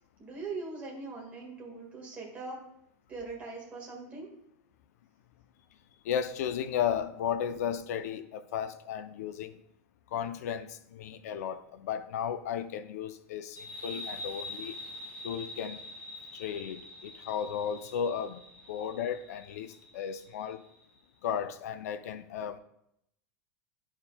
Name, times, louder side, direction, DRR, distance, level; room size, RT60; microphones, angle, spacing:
voice 1, 0.2-2.6 3.1-4.3, right 3 dB, 15° right, 1.7 m, -41 dB
voice 2, 6.0-9.5 10.1-14.8 15.2-15.8 16.3-18.4 18.7-20.6 21.2-22.6, left 8 dB, 75° left, 0.5 m, -34 dB
sound 1, 13.6-20.8, left 2 dB, 20° left, 1.7 m, -45 dB
13.0 x 4.3 x 2.2 m
supercardioid pair, 175°, 8 cm